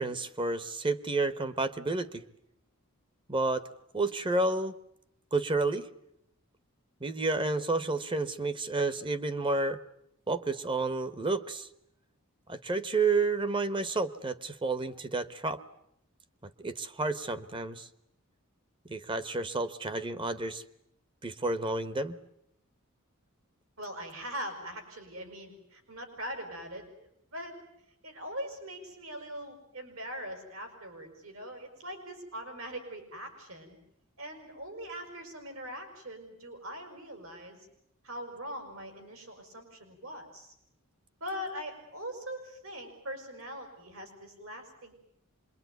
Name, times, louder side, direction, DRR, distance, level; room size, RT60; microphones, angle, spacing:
voice 1, 0.0-2.2 3.3-3.6 3.9-4.7 5.3-5.9 7.0-9.8 10.3-11.7 12.5-15.6 16.6-17.9 18.9-20.6 21.2-22.2, right 3 dB, 25° right, 13 dB, 1.1 m, -30 dB
voice 2, 23.8-26.8 27.3-27.6 28.0-33.8 34.2-37.7 38.0-40.5 41.2-45.0, equal, 70° right, 6 dB, 5.9 m, -41 dB
25.5 x 22.5 x 9.4 m, 0.77 s
head